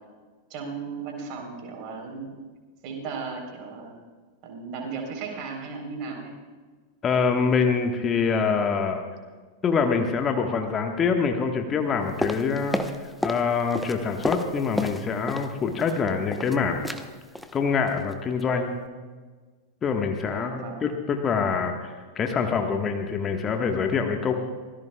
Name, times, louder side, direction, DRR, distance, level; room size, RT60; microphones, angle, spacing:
voice 1, 0.5-2.3 2.8-3.9 4.4-6.4 20.2-20.8, right 5 dB, 40° right, 2 dB, 3.9 m, -36 dB
voice 2, 7.0-9.0 9.6-12.8 13.2-16.8 17.5-18.8 19.8-24.3, left 5 dB, 25° left, 4 dB, 1.4 m, -25 dB
sound 1, 12.2-13.5 13.7-15.5 15.8-16.6 16.8-17.1 17.4-17.6 17.9-18.1 18.4-18.5, left 1 dB, ahead, 1.0 m, -31 dB
25.0 x 18.0 x 2.3 m, 1.4 s
figure-of-eight pair, 90°, 0 cm